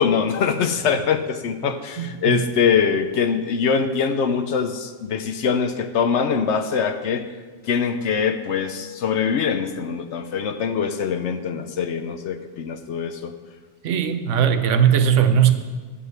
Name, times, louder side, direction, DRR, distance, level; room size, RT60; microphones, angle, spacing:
voice 1, 0.0-7.3 7.7-13.3, left 6 dB, 70° left, 9 dB, 0.9 m, -23 dB
voice 2, 2.0-2.4 13.8-15.5, right 8 dB, 80° right, 9 dB, 1.1 m, -18 dB
10.5 x 5.5 x 7.7 m, 1.4 s
omnidirectional pair, 1.2 m